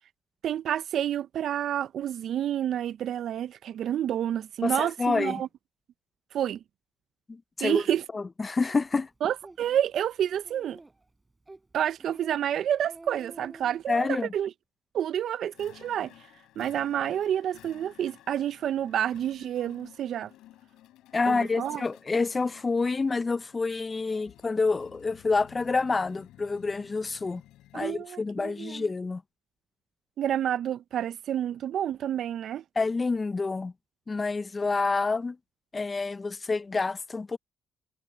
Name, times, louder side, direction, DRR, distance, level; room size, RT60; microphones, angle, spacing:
voice 1, 0.4-5.5 6.3-6.6 7.6-8.0 9.2-10.8 11.7-14.5 14.9-16.1 16.6-20.3 21.3-21.8 27.7-28.8 30.2-32.6, right 10 dB, 65° right, 0.5 m, -29 dB
voice 2, 4.6-5.4 7.3-7.8 8.1-9.1 13.9-14.3 21.1-27.4 27.7-29.2 32.8-33.7 34.1-35.4 35.7-37.4, left 4 dB, 30° left, 0.6 m, -28 dB
Speech, 8.7-8.8 9.3-9.6 10.0-10.1 10.4-11.0 11.5-11.6 12.0-12.4 12.7-13.7, right 2 dB, 20° right, 4.3 m, -48 dB
Rhythmical Vibrations, 15.5-28.1, left 14 dB, 80° left, 3.3 m, -54 dB
supercardioid pair, 60°, 0 cm